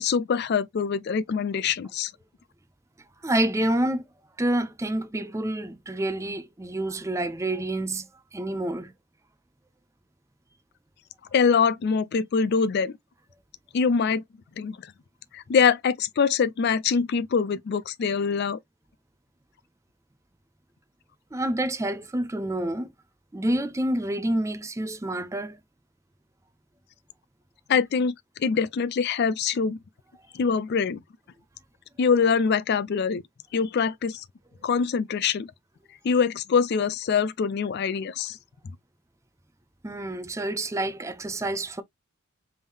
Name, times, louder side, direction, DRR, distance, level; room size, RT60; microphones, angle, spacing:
voice 1, 0.0-2.1 11.3-13.0 13.7-14.2 14.6-14.8 15.3-18.6 27.7-28.1 28.4-29.8 30.3-31.0 32.0-33.2 33.5-34.2 34.6-35.5 36.0-38.4, left 6 dB, 45° left, 0.3 m, -24 dB
voice 2, 3.2-4.1 4.4-8.9 21.3-22.9 23.3-25.6 39.8-41.8, right 1 dB, 15° right, 0.5 m, -28 dB
3.6 x 3.5 x 2.6 m
head